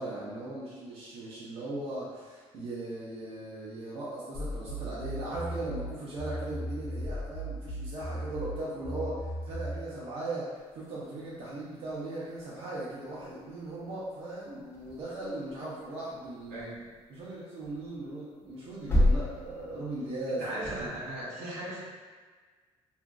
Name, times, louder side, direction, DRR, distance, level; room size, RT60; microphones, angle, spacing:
voice 1, 0.0-16.7 17.1-20.9, right 2 dB, 60° right, -8 dB, 0.6 m, -38 dB
sound 1, 4.3-9.8, equal, 75° left, 0.7 m, -37 dB
sound 2, 10.6-21.2, left 1 dB, 25° left, 0.5 m, -34 dB
voice 2, 16.5-16.9 20.3-21.8, right 1 dB, 90° right, -6 dB, 0.8 m, -38 dB
2.9 x 2.4 x 2.4 m, 1.5 s
cardioid pair, 175°, 11 cm